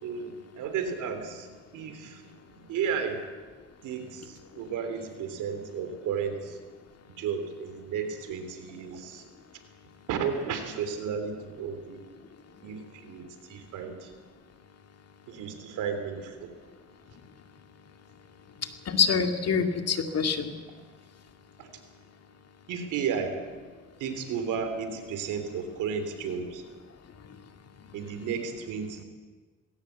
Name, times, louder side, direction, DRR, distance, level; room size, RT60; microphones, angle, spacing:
voice 1, 0.0-3.2 3.8-6.6 7.2-9.3 10.1-12.0 12.6-14.1 15.3-16.5 20.7-20.8 21.6-21.7 22.7-23.7 24.0-26.6 27.9-29.0, right 6 dB, 90° right, 7 dB, 3.1 m, -33 dB
voice 2, 18.9-20.5 27.2-27.4 27.8-28.0, left 6 dB, 55° left, 6 dB, 2.3 m, -26 dB
20.0 x 17.0 x 8.2 m, 1.4 s
cardioid pair, 90°, 30 cm